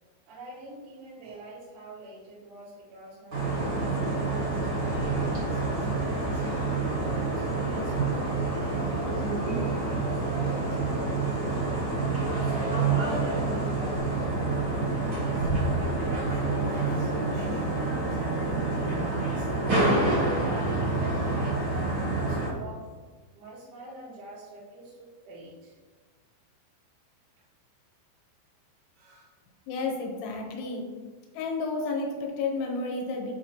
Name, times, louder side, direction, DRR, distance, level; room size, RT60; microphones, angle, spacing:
voice 1, 0.3-6.6 7.1-11.9 12.4-15.5 15.9-22.9 23.3-25.8 29.0-29.3, right 2 dB, 90° right, -11 dB, 4.2 m, -45 dB
sound 1, 3.3-22.5, right 3 dB, 70° right, 1.2 m, -27 dB
voice 2, 29.7-30.9 31.3-33.3, left 3 dB, 80° left, 1 dB, 3.1 m, -31 dB
8.7 x 4.2 x 3.0 m, 1.4 s
omnidirectional pair, 6.0 m